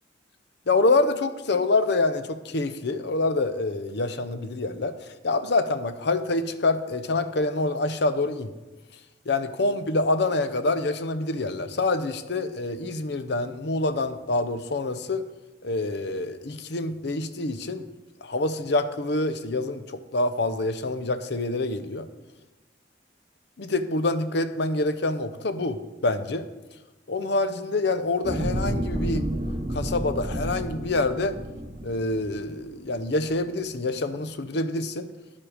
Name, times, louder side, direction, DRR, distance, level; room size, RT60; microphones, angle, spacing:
voice 1, 0.7-8.5 9.3-15.2 15.6-17.8 18.2-22.1 23.6-26.5 27.1-29.2 29.7-31.3 31.8-35.1, left 2 dB, 60° left, 11 dB, 0.7 m, -26 dB
sound 1, 28.2-32.7 33.2-33.4, right 1 dB, 30° right, 0.8 m, -31 dB
10.5 x 7.4 x 4.9 m, 1.1 s
head